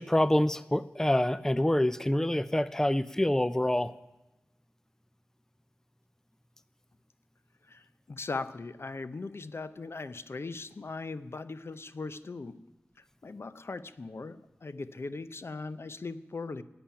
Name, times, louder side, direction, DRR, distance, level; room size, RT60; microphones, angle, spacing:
voice 1, 0.0-3.9, left 1 dB, 10° left, 16 dB, 0.5 m, -26 dB
voice 2, 7.7-12.6 13.2-16.6, left 3 dB, 65° left, 14 dB, 0.7 m, -39 dB
11.5 x 8.9 x 9.9 m, 1.0 s
cardioid pair, 45°, 5 cm